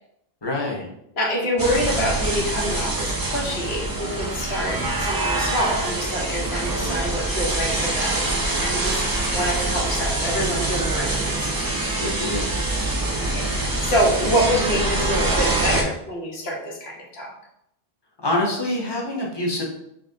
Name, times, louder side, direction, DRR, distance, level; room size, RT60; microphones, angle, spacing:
voice 1, 0.4-0.9 12.0-12.5 18.2-19.6, left 1 dB, 30° left, -1 dB, 0.7 m, -25 dB
voice 2, 1.1-9.0 9.3-11.5 13.3-17.3, equal, 90° left, -2 dB, 1.2 m, -26 dB
sound 1, 1.6-15.8, right 2 dB, 35° right, 0.4 m, -25 dB
3.9 x 2.9 x 2.6 m, 0.76 s
omnidirectional pair, 1.0 m